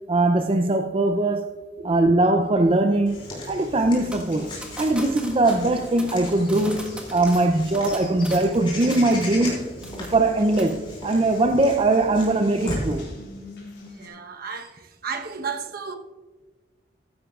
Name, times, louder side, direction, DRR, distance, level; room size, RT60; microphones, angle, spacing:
voice 1, 0.1-1.5 1.8-9.6 10.1-13.0, right 2 dB, 30° right, 0.5 m, -21 dB
Water tap faucet, 3.1-14.1, left 1 dB, 80° left, 3.9 m, -45 dB
Walk footsteps / Bird vocalization bird call bird song, 3.1-13.0, left 1 dB, 30° left, 4.0 m, -36 dB
sound 1, 4.1-9.6 9.8-10.3 10.6-10.8, right 1 dB, 5° right, 1.4 m, -41 dB
voice 2, 13.9-15.9, right 5 dB, 55° right, 1.0 m, -33 dB
14.5 x 12.0 x 2.4 m
head